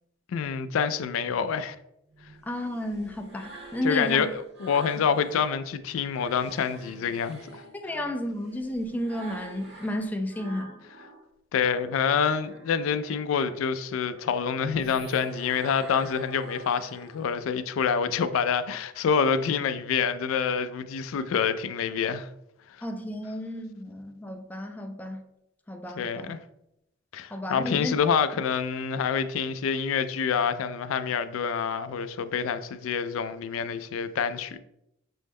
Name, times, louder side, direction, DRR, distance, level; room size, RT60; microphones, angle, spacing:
voice 1, 0.3-1.8 3.8-7.6 11.5-22.3 26.0-26.4 27.1-34.6, left 6 dB, 90° left, 0.3 m, -27 dB
sound 1, 2.1-5.5 5.9-11.3 11.6-17.5, right 1 dB, 60° right, 0.9 m, -47 dB
voice 2, 2.4-4.3 7.8-10.7 22.8-25.2 25.7-26.3 27.3-28.0 28.3-28.4, left 1 dB, 10° left, 0.3 m, -32 dB
6.1 x 2.1 x 3.4 m
head